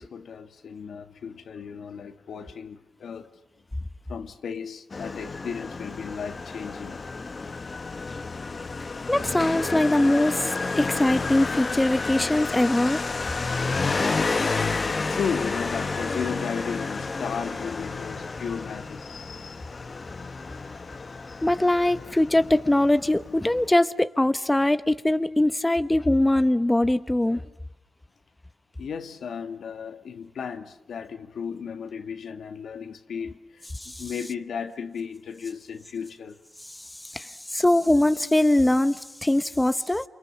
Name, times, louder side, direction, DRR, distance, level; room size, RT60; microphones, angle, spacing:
voice 1, 0.0-3.4 4.1-7.0 14.7-19.7 28.8-36.4, left 6 dB, 90° left, 1.7 m, -35 dB
Motorcycle, 4.9-23.7, left 4 dB, 45° left, 1.3 m, -31 dB
voice 2, 9.1-13.0 21.4-27.4 33.8-33.9 37.1-40.0, left 1 dB, 15° left, 1.0 m, -22 dB
28.5 x 28.0 x 7.4 m
cardioid pair, 85°, 0 cm